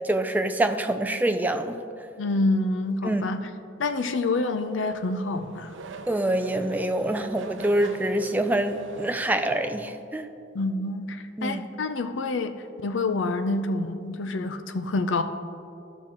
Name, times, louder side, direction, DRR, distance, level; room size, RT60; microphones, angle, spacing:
voice 1, 0.0-1.8 3.0-3.2 6.1-10.3 11.4-11.6, right 1 dB, 10° right, 6 dB, 0.4 m, -25 dB
voice 2, 2.2-3.5 3.8-5.7 10.5-15.2, left 2 dB, 70° left, 9 dB, 0.5 m, -27 dB
Race car auto racing / Accelerating revving vroom, 4.5-10.1, right 2 dB, 75° right, 0.6 m, -42 dB
14.0 x 5.8 x 3.0 m, 2.6 s
head